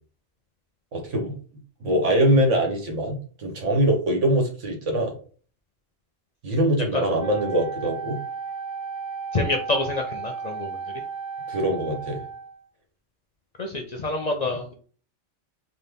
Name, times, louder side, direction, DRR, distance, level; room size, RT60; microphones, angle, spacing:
voice 1, 0.9-1.3 1.8-5.1 6.4-8.2 11.5-12.2 14.5-14.6, right 1 dB, 80° right, 2 dB, 1.5 m, -23 dB
Wind instrument woodwind instrument, 7.2-12.7, right 5 dB, 55° right, 1.1 m, -34 dB
voice 2, 9.3-10.8 13.6-14.7, left 2 dB, 45° left, 3 dB, 0.6 m, -27 dB
4.2 x 2.2 x 3.5 m, 0.41 s
omnidirectional pair, 1.2 m